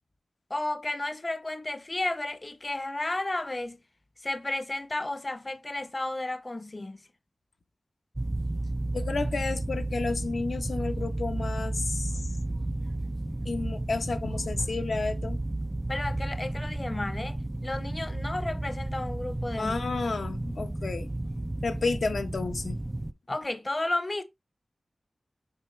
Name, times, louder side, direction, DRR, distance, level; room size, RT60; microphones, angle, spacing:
voice 1, 0.5-3.8 4.2-7.0 15.9-19.8 23.3-24.2, left 2 dB, 35° left, 0.8 m, -33 dB
sound 1, 8.2-23.1, right 1 dB, 20° right, 0.4 m, -32 dB
voice 2, 8.9-12.1 13.4-15.4 19.6-21.1 21.6-22.8, left 3 dB, 85° left, 1.0 m, -31 dB
7.4 x 4.4 x 3.3 m
wide cardioid pair, 65°, 0 cm